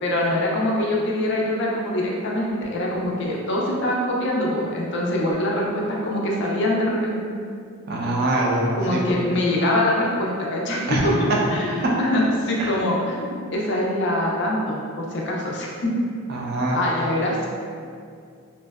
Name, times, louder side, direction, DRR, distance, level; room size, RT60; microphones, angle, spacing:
voice 1, 0.0-7.2 8.7-11.1 11.5-15.9 16.7-17.5, left 1 dB, 50° left, -3 dB, 0.4 m, -24 dB
voice 2, 7.9-9.0 10.9-11.1 11.8-11.9 12.6-12.7 16.3-16.8, right 1 dB, 45° right, -3 dB, 0.3 m, -23 dB
2.5 x 2.1 x 2.2 m, 2.3 s
head